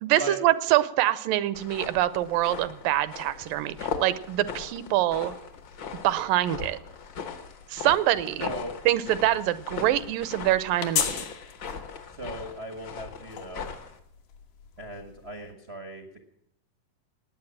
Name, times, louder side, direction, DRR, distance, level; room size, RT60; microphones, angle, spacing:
voice 1, 0.0-5.4 6.0-6.8 7.7-8.5 8.9-11.2, right 14 dB, 85° right, 15 dB, 2.4 m, -25 dB
sound 1, 1.5-14.0, left 6 dB, 55° left, 1.3 m, -39 dB
sound 2, 2.1-15.5, left 8 dB, 75° left, 2.9 m, -40 dB
voice 2, 8.4-8.7 12.2-13.7 14.8-16.2, right 1 dB, 55° right, 4 dB, 0.7 m, -38 dB
18.5 x 9.4 x 7.4 m, 0.74 s
omnidirectional pair, 3.8 m